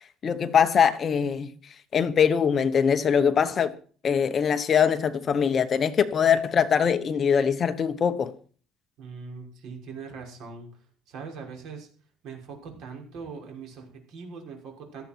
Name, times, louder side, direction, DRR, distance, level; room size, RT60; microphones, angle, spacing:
voice 1, 0.2-1.5 1.9-3.7 4.0-8.3, left 7 dB, 30° left, 1.0 m, -22 dB
voice 2, 9.0-10.7 11.1-11.9 12.2-15.0, right 5 dB, 60° right, 5.9 m, -41 dB
17.5 x 13.5 x 4.5 m
cardioid pair, 160°, 0 cm